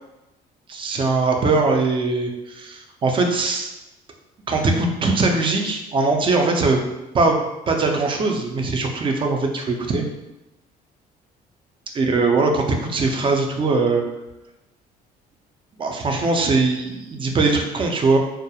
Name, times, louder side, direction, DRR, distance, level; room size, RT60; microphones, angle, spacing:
voice 1, 0.7-3.7 4.5-6.8 7.1-10.1 11.9-14.0 15.8-18.2, right 3 dB, 30° right, 2 dB, 0.4 m, -21 dB
2.3 x 2.0 x 2.7 m, 0.98 s
cardioid pair, 110°, 17 cm